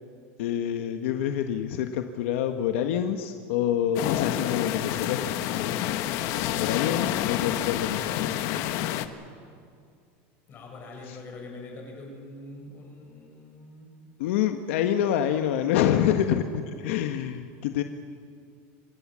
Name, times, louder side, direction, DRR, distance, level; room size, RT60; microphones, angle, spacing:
voice 1, 0.4-5.7 6.6-8.4 11.1-11.2 14.2-17.8, left 10 dB, 75° left, 6 dB, 1.3 m, -27 dB
sound 1, 3.9-9.1, left 12 dB, 55° left, 1.3 m, -28 dB
voice 2, 10.5-14.0, left 2 dB, 30° left, 1 dB, 6.8 m, -43 dB
26.0 x 18.5 x 7.5 m, 2.3 s
supercardioid pair, 145°, 7 cm